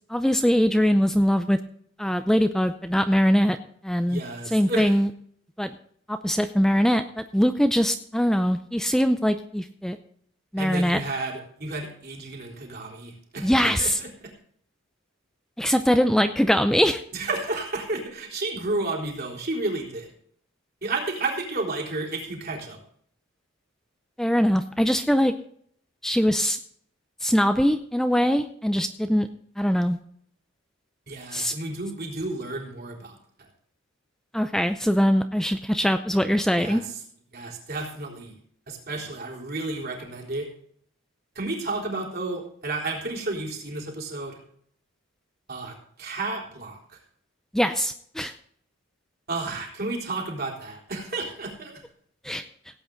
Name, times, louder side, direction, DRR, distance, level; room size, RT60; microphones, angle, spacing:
voice 1, 0.1-1.6 2.0-3.6 3.8-5.1 5.6-5.7 6.1-10.0 10.5-11.0 13.4-14.0 15.6-17.0 24.2-25.3 26.0-26.6 27.2-29.3 29.6-30.0 31.3-31.5 34.3-36.8 47.5-48.3 52.2-52.5, equal, ahead, 8 dB, 0.5 m, -22 dB
voice 2, 4.1-4.9 10.6-14.3 17.1-20.1 20.8-22.8 31.1-33.2 36.6-36.8 37.3-38.3 38.7-40.5 41.4-44.4 45.5-46.8 49.3-51.8, right 2 dB, 50° right, -1 dB, 3.8 m, -32 dB
17.0 x 8.6 x 3.9 m, 0.62 s
head